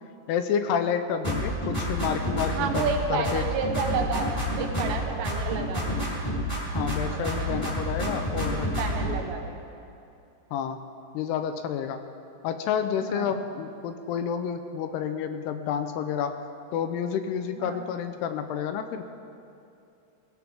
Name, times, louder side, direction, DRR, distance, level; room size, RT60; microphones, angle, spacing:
voice 1, 0.3-3.5 6.8-8.7 10.5-10.8 11.1-12.0 12.4-16.3 16.7-19.0, left 8 dB, 80° left, 8 dB, 2.7 m, -29 dB
sound 1, 1.2-3.0 3.2-5.0 5.2-7.0 7.2-9.1, equal, 10° left, 2.9 m, -29 dB
voice 2, 2.5-4.3 4.6-6.2 7.0-7.5 8.7-9.6 13.0-13.4 17.6-17.9, right 5 dB, 80° right, 4 dB, 3.4 m, -31 dB
22.0 x 15.5 x 3.6 m, 2.7 s
omnidirectional pair, 4.9 m